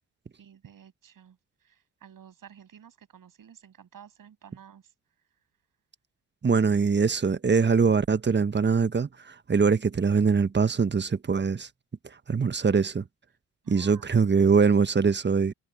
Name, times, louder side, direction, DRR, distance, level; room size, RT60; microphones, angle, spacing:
voice 1, 0.4-1.4 1.7-1.8 2.0-4.8 6.5-6.7 13.6-14.0, right 8 dB, 55° right, 7.5 m, -51 dB
voice 2, 6.4-11.7 12.3-13.0 13.7-15.5, right 5 dB, 25° right, 1.4 m, -23 dB
hypercardioid pair, 50°, 39 cm